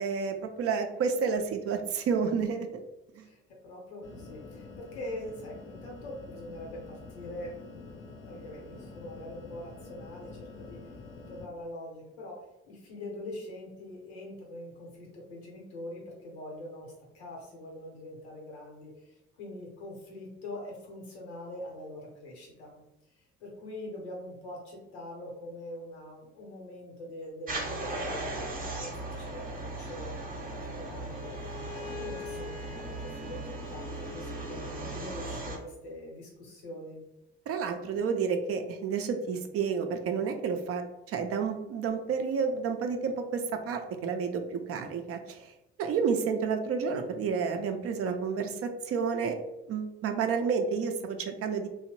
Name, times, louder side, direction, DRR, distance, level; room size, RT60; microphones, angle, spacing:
voice 1, 0.0-2.7 3.2-3.3 37.5-45.5 45.8-49.4 49.7-51.7, right 5 dB, 45° right, 6 dB, 0.5 m, -30 dB
voice 2, 3.2-10.8 11.3-12.4 12.7-22.7 23.2-28.5 28.8-30.2 30.6-37.0, left 1 dB, 85° left, -1 dB, 0.8 m, -43 dB
sound 1, 4.0-11.5, left 4 dB, 40° left, 0.5 m, -47 dB
sound 2, 27.5-35.6, right 2 dB, 25° right, 0.8 m, -37 dB
Bowed string instrument, 31.1-35.3, left 4 dB, 5° left, 0.7 m, -45 dB
2.8 x 2.0 x 2.9 m, 0.92 s
hypercardioid pair, 50°, 32 cm